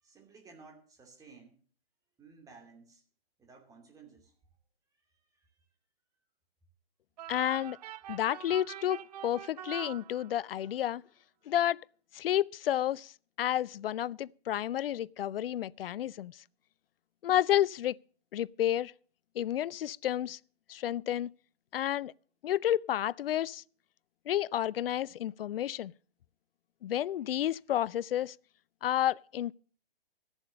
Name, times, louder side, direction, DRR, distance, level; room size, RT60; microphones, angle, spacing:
voice 1, 0.0-1.6 2.2-3.0 3.4-4.3 5.4-5.5, right 4 dB, 10° right, 2.8 m, -55 dB
sound 1, 7.2-10.7, right 11 dB, 40° right, 0.5 m, -45 dB
voice 2, 7.3-7.8 8.1-11.0 11.5-11.8 12.1-13.1 13.4-16.3 17.2-18.0 18.3-18.9 19.4-20.4 20.7-21.3 21.7-22.1 22.4-23.6 24.3-25.9 26.8-28.4 28.8-29.5, left 11 dB, 65° left, 0.4 m, -30 dB
14.0 x 7.1 x 6.4 m
hypercardioid pair, 140°, 31 cm